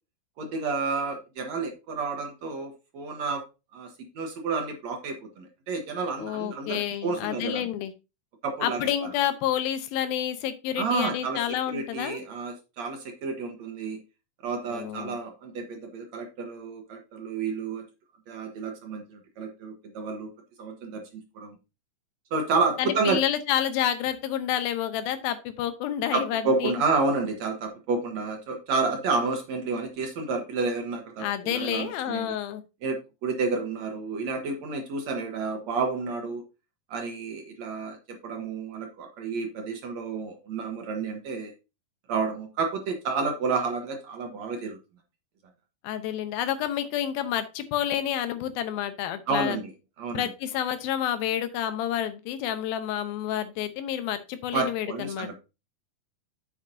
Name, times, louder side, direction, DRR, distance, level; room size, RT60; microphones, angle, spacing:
voice 1, 0.4-3.4 3.7-7.7 8.4-9.1 10.8-14.0 14.4-17.8 18.3-20.3 20.6-21.6 22.3-23.2 26.1-32.4 32.8-36.4 36.9-41.5 42.1-44.8 49.3-49.7 50.0-50.3 54.5-55.4, right 4 dB, 60° right, 3 dB, 2.1 m, -30 dB
voice 2, 6.2-7.9 8.6-12.2 14.7-15.2 22.8-26.8 31.2-32.6 45.8-49.6 50.1-55.4, left 11 dB, 90° left, 10 dB, 2.7 m, -29 dB
9.2 x 7.3 x 2.7 m, 0.28 s
omnidirectional pair, 4.1 m